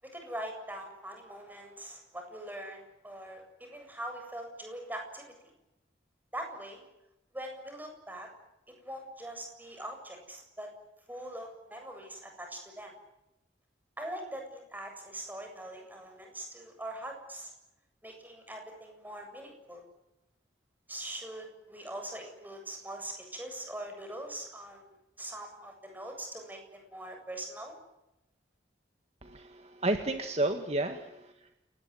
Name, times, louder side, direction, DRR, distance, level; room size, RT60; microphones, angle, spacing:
voice 1, 0.0-5.3 6.3-6.8 7.3-8.3 8.8-10.7 11.1-12.9 14.0-17.5 18.0-19.8 20.9-27.7, right 1 dB, 10° right, 4 dB, 7.7 m, -42 dB
voice 2, 29.2-31.5, right 2 dB, 35° right, 6 dB, 1.9 m, -32 dB
29.5 x 19.5 x 9.7 m, 0.93 s
head